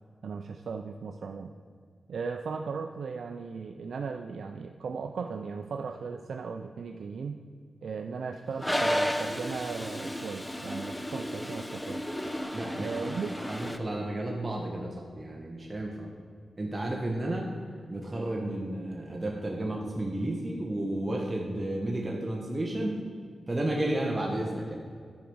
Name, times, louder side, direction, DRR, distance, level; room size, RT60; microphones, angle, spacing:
voice 1, 0.2-1.5 2.1-7.4 7.8-12.0 12.8-13.4 17.3-17.4, right 5 dB, 80° right, 5 dB, 0.4 m, -37 dB
Toilet flush, 8.6-13.8, equal, 10° left, 0.7 m, -33 dB
voice 2, 12.5-13.1 13.5-16.1 16.6-17.4 17.9-23.0 23.5-24.7, right 1 dB, 25° right, -2 dB, 1.2 m, -32 dB
10.5 x 5.1 x 6.1 m, 2.1 s
cardioid pair, 80°, 0 cm